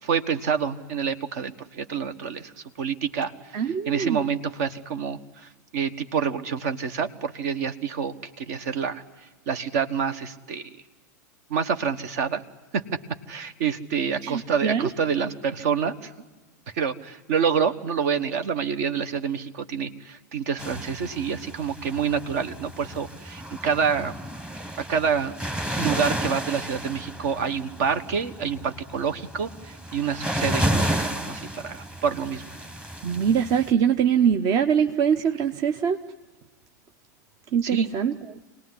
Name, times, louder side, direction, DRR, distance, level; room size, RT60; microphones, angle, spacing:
voice 1, 0.0-9.0 9.5-10.7 11.5-12.4 12.7-12.8 13.3-16.1 16.7-24.1 24.8-25.3 25.8-32.4 37.6-37.9, right 6 dB, 60° right, 10 dB, 1.4 m, -27 dB
voice 2, 3.5-4.3 14.2-14.9 33.0-36.0 37.5-38.4, right 8 dB, 40° right, 8 dB, 0.9 m, -23 dB
sound 1, 20.6-33.7, equal, 10° right, 1.2 m, -32 dB
25.0 x 19.0 x 9.8 m, 1.3 s
hypercardioid pair, 100°, 10 cm